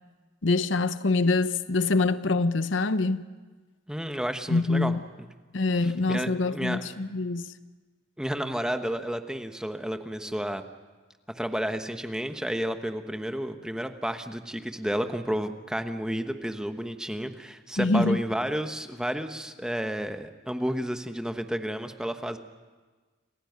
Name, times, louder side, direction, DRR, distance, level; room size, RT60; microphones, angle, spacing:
voice 1, 0.4-3.2 4.5-5.1 5.5-7.5 17.8-18.2, left 3 dB, 70° left, 0.8 m, -25 dB
voice 2, 3.9-4.9 5.8-6.8 8.2-10.6 11.3-22.4, equal, 5° right, 1.1 m, -31 dB
28.5 x 15.5 x 9.5 m
head